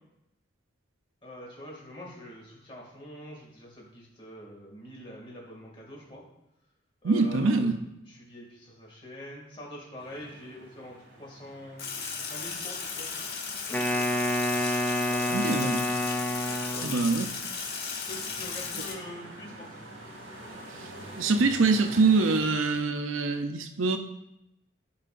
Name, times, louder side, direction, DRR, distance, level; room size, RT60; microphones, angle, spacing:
voice 1, 1.2-6.2 7.0-7.7 8.1-11.9 12.2-13.1 13.5-14.0 14.9-15.5 16.5-16.9 18.1-19.7, left 1 dB, 25° left, -3 dB, 2.3 m, -45 dB
voice 2, 7.0-7.8 15.3-15.8 16.8-17.3 21.2-24.0, right 3 dB, 80° right, 7 dB, 0.6 m, -24 dB
sound 1, 10.0-22.4, right 1 dB, 65° right, 2.0 m, -47 dB
Sink (filling or washing), 11.8-18.9, left 5 dB, 50° left, 1.3 m, -36 dB
Wind instrument woodwind instrument, 13.7-17.2, left 1 dB, 10° left, 0.6 m, -28 dB
12.5 x 5.6 x 2.6 m, 0.85 s
head